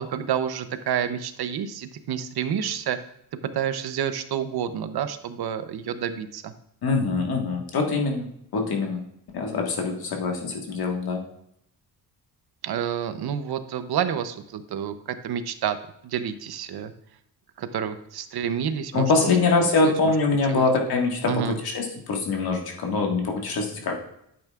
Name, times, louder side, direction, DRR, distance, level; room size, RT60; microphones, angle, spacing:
voice 1, 0.0-3.0 3.5-6.5 12.6-15.8 16.0-16.9 17.6-19.3 19.6-19.9 20.5-20.6 21.3-21.6, right 8 dB, 65° right, 10 dB, 0.8 m, -29 dB
voice 2, 6.8-8.3 8.5-9.0 9.3-11.2 18.9-24.0, left 3 dB, 60° left, 1 dB, 1.8 m, -24 dB
10.5 x 8.8 x 2.4 m, 0.74 s
wide cardioid pair, 145°, 42 cm